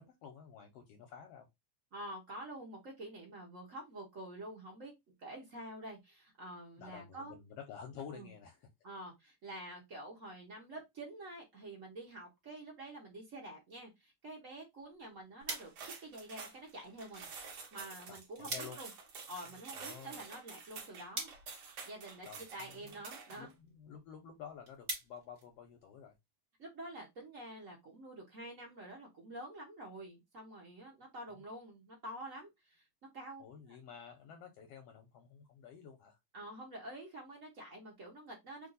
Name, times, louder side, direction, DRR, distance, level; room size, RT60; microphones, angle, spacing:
voice 1, 0.0-1.5 6.8-8.7 18.1-18.8 19.8-20.2 22.2-22.9 23.3-26.1 33.4-36.2, left 7 dB, 75° left, 1.5 m, -51 dB
voice 2, 1.9-4.9 5.2-7.3 8.1-8.3 8.8-17.3 17.7-18.9 19.3-21.3 21.8-22.3 22.5-23.5 26.6-32.8 33.1-33.4 33.7-33.8 36.3-38.7, right 1 dB, 80° right, 0.7 m, -48 dB
sound 1, 14.7-26.2, right 2 dB, 35° right, 1.5 m, -49 dB
sound 2, 15.4-23.5, right 5 dB, 60° right, 1.7 m, -49 dB
4.4 x 2.5 x 3.9 m
omnidirectional pair, 3.3 m